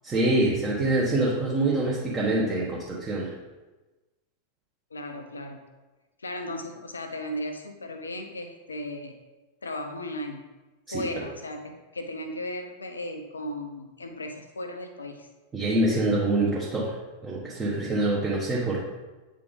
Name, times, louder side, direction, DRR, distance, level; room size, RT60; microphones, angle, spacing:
voice 1, 0.0-3.3 10.9-11.0 15.5-16.9 17.2-18.8, right 2 dB, 20° right, -4 dB, 1.2 m, -25 dB
voice 2, 4.9-5.6 6.2-9.1 9.6-10.4 10.9-15.3, left 1 dB, 75° left, 6 dB, 0.7 m, -36 dB
8.4 x 3.7 x 3.8 m, 1.2 s
figure-of-eight pair, 90°, 0 cm